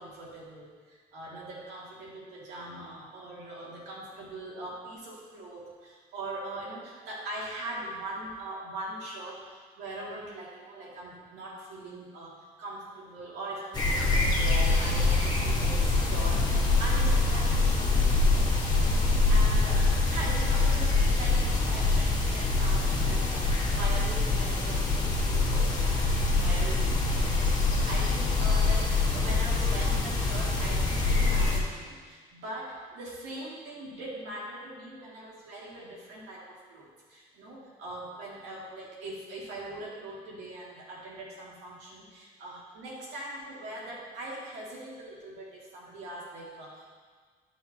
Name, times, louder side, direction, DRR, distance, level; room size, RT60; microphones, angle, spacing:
voice 1, 0.0-18.5 19.3-47.0, right 1 dB, 85° right, -5 dB, 2.5 m, -41 dB
sound 1, 13.7-31.6, left 3 dB, 25° left, 1.7 m, -25 dB
12.0 x 5.7 x 3.0 m, 1.5 s
cardioid pair, 110°, 17 cm